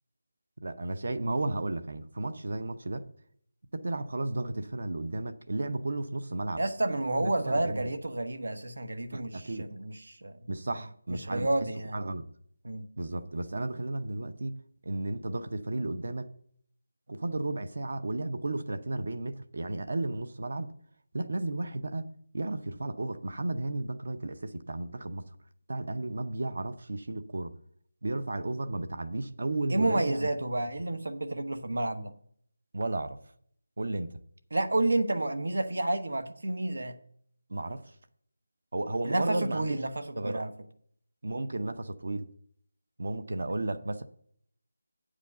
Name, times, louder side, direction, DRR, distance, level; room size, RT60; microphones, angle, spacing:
voice 1, 0.6-3.1 3.7-6.6 7.2-7.8 9.1-9.7 10.5-11.5 11.9-12.3 13.0-16.3 17.1-20.7 21.1-22.1 22.3-25.2 25.7-27.5 28.0-30.3 32.7-33.2 33.8-34.1 37.5-37.9 38.7-39.8 40.2-40.4 41.2-42.3 43.0-44.0, right 2 dB, 55° right, 0.7 m, -33 dB
voice 2, 6.6-10.4 11.1-12.0 12.6-12.8 29.7-32.1 34.5-37.0 39.0-40.5, right 2 dB, 85° right, 1.0 m, -30 dB
8.4 x 5.0 x 6.7 m
figure-of-eight pair, 175°, 0 cm